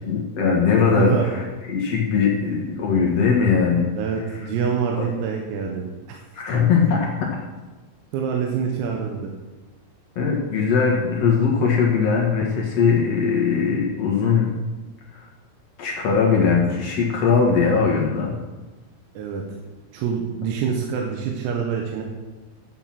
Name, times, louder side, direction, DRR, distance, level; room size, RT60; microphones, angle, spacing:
voice 1, 0.0-3.9 5.0-5.1 6.3-7.3 10.1-14.5 15.1-15.3 15.8-18.3, left 5 dB, 90° left, -2 dB, 1.4 m, -20 dB
voice 2, 4.0-6.2 8.1-9.3 19.2-19.4 19.9-22.0, right 7 dB, 85° right, 1 dB, 4.0 m, -26 dB
13.5 x 9.0 x 6.0 m, 1.2 s
omnidirectional pair, 5.9 m